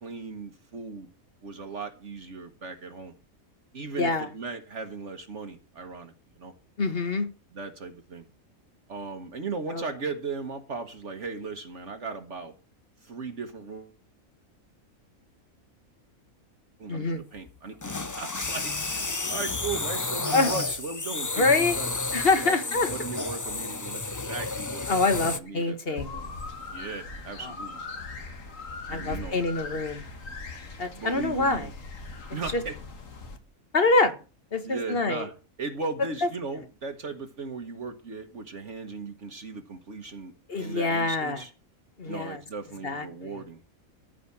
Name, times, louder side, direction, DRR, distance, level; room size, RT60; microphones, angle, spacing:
voice 1, 0.0-1.1 1.4-3.1 3.7-6.5 7.5-8.3 8.9-12.5 13.0-14.0 16.8-22.0 22.3-22.5 22.9-24.9 25.2-26.3 26.7-27.8 28.9-29.4 30.9-31.7 32.3-32.8 34.6-35.3 35.6-40.3 40.6-41.5 42.0-43.6, right 4 dB, 60° right, 1.6 m, -37 dB
voice 2, 6.8-7.3 9.7-9.8 16.9-17.2 20.3-20.5 21.4-21.8 22.1-22.9 24.9-26.2 27.4-27.5 28.9-30.1 30.8-31.7 32.5-32.6 33.7-34.1 34.5-35.3 36.2-36.3 40.5-41.4 42.0-42.4 42.8-43.4, left 3 dB, 45° left, 1.6 m, -25 dB
sound 1, 17.4-25.4, left 3 dB, 25° left, 0.4 m, -31 dB
sound 2, 26.0-33.4, left 3 dB, 70° left, 2.0 m, -40 dB
14.5 x 5.1 x 8.5 m
omnidirectional pair, 1.4 m